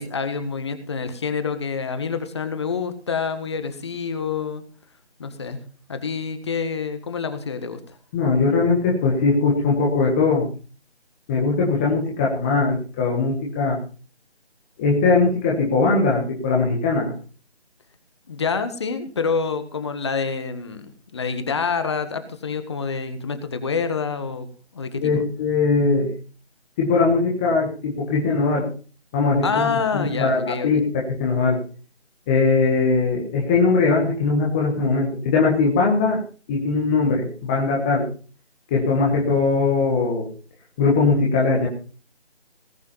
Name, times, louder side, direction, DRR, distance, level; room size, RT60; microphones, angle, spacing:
voice 1, 0.0-4.6 5.2-5.6 5.9-8.0 18.3-24.5 24.7-25.2 29.4-30.8, left 5 dB, 25° left, 10 dB, 1.7 m, -27 dB
voice 2, 8.1-10.5 11.3-13.8 14.8-17.1 25.0-26.1 26.8-28.7 29.1-31.6 32.3-36.2 36.5-38.1 38.7-40.3 40.8-41.7, left 4 dB, 10° left, -3 dB, 1.3 m, -20 dB
19.0 x 8.4 x 5.6 m, 0.38 s
figure-of-eight pair, 165°, 33 cm